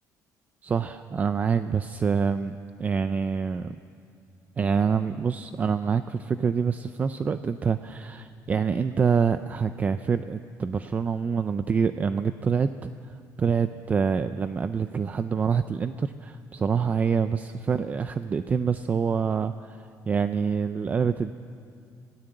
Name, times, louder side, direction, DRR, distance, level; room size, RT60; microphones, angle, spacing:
voice 1, 0.6-3.8 4.6-12.9 13.4-21.3, right 6 dB, 25° right, 11 dB, 0.4 m, -26 dB
26.0 x 17.5 x 7.8 m, 2.4 s
cardioid pair, 165°, 7 cm